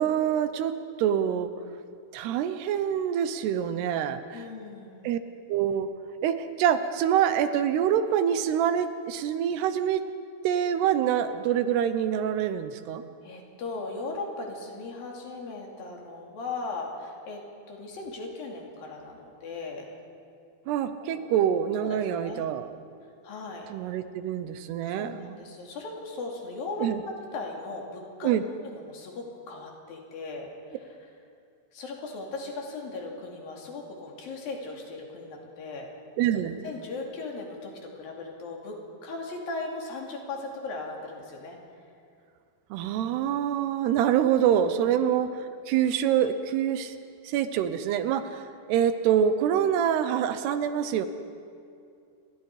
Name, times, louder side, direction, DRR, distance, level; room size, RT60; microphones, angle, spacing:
voice 1, 0.0-1.5 2.1-4.4 5.0-5.2 5.5-5.9 6.2-10.0 10.4-13.0 20.7-22.7 23.7-25.4 26.8-27.0 28.2-28.4 36.2-36.6 42.7-45.4 45.7-46.9 47.2-51.1, right 9 dB, 80° right, 10 dB, 2.9 m, -26 dB
voice 2, 4.3-5.1 13.2-19.9 21.1-21.2 21.8-22.4 23.2-23.7 24.8-28.3 28.6-31.0 31.7-35.9 36.6-41.6 44.8-45.0, left 3 dB, 60° left, 0 dB, 4.2 m, -38 dB
28.5 x 22.5 x 4.9 m, 2.4 s
omnidirectional pair, 4.8 m